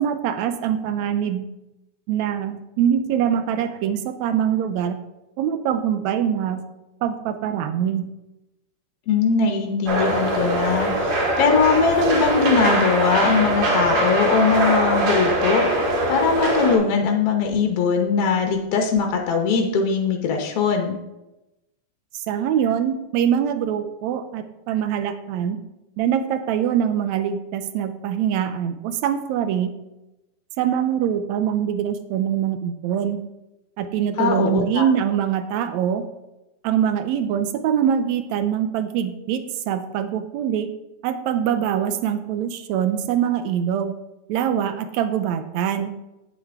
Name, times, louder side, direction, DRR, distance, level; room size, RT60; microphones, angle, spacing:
voice 1, 0.0-1.5 2.1-5.0 5.4-6.6 7.0-8.1 22.1-25.6 26.0-29.7 30.6-33.2 33.8-36.0 36.6-40.7 41.0-43.9 44.3-45.9, right 9 dB, 80° right, 10 dB, 1.7 m, -23 dB
voice 2, 9.1-21.0 34.2-34.8, left 5 dB, 70° left, 3 dB, 1.4 m, -21 dB
sound 1, 9.9-16.8, right 1 dB, 60° right, 3.4 m, -22 dB
8.9 x 8.7 x 3.5 m, 0.96 s
omnidirectional pair, 3.7 m